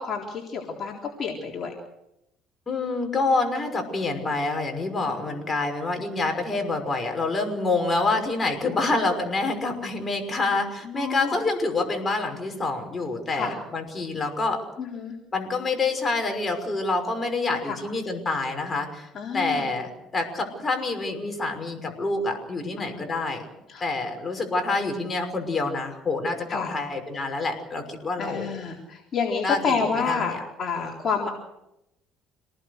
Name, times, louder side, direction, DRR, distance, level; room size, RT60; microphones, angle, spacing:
voice 1, 0.0-1.7 5.0-5.4 8.6-9.0 10.8-11.4 13.3-13.5 14.8-15.2 17.6-17.8 19.1-19.7 22.8-23.1 23.7-23.9 26.5-26.8 28.2-31.3, left 5 dB, 45° left, -1 dB, 3.9 m, -29 dB
voice 2, 2.7-14.6 15.3-19.1 19.3-23.4 23.8-28.5 29.4-30.4, left 3 dB, 25° left, 4 dB, 5.7 m, -27 dB
27.0 x 19.5 x 6.7 m, 0.89 s
cardioid pair, 105°, 0 cm